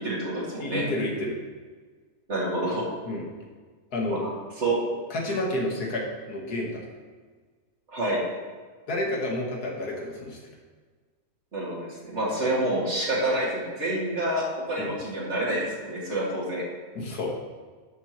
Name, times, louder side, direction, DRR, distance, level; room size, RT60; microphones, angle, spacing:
voice 1, 0.0-0.9 2.3-2.8 4.1-4.3 4.6-4.8 7.9-8.2 11.5-16.6, right 1 dB, 45° right, -5 dB, 2.5 m, -28 dB
voice 2, 0.6-1.4 3.1-3.3 3.9-4.3 5.1-6.8 8.9-10.4 14.8-14.9 17.0-17.3, left 1 dB, 80° left, -1 dB, 2.0 m, -30 dB
11.0 x 7.2 x 3.0 m, 1.5 s
omnidirectional pair, 1.6 m